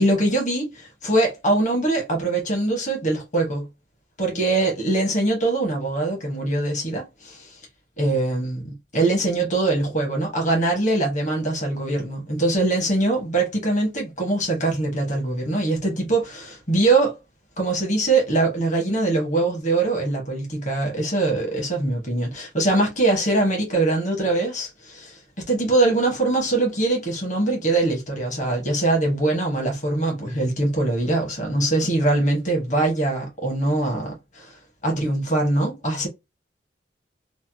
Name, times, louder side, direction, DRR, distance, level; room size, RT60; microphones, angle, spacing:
voice 1, 0.0-3.7 4.2-7.6 8.0-17.2 17.6-36.1, right 2 dB, 45° left, 1.1 m, -22 dB
3.2 x 2.1 x 2.7 m
head